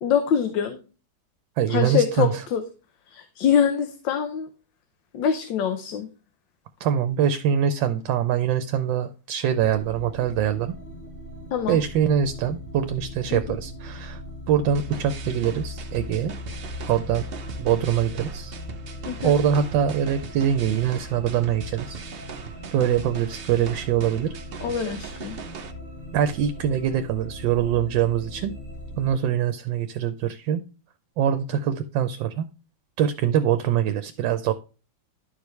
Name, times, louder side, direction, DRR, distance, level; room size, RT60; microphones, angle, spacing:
voice 1, 0.0-0.8 1.7-2.6 3.1-4.5 5.1-6.1 11.5-11.8 13.3-13.6 19.0-19.4 24.6-25.4, left 8 dB, 75° left, 7 dB, 1.5 m, -24 dB
voice 2, 1.6-2.3 6.8-10.7 11.7-14.2 14.5-16.3 16.9-17.3 17.6-18.5 19.2-22.0 22.7-24.3 26.1-28.5 29.0-30.6 31.2-32.4 33.0-34.5, right 9 dB, 80° right, 9 dB, 1.3 m, -23 dB
sound 1, 9.5-29.1, left 1 dB, 40° left, 2.3 m, -39 dB
sound 2, 14.7-25.7, right 6 dB, 65° right, 0.5 m, -40 dB
12.0 x 5.0 x 3.1 m, 0.33 s
omnidirectional pair, 2.0 m